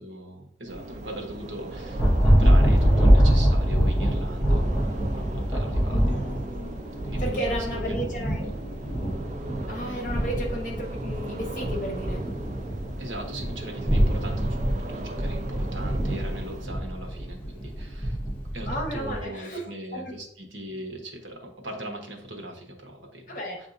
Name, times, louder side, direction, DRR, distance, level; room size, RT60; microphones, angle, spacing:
voice 1, 0.0-1.6 2.3-4.6 5.1-5.2 5.5-5.7 7.1-8.0 13.0-14.3 15.2-17.4 18.5-21.0 21.2-21.3 21.6-22.5, right 1 dB, 80° right, 1 dB, 1.0 m, -38 dB
sound 1, 0.7-16.6, right 2 dB, 40° right, 0.4 m, -39 dB
Thunder, 1.7-19.2, equal, 10° left, 0.8 m, -24 dB
voice 2, 5.9-6.9 7.2-8.5 9.7-12.3 18.7-20.2 23.3-23.6, equal, 45° left, -1 dB, 1.0 m, -33 dB
7.7 x 2.6 x 2.5 m, 0.71 s
head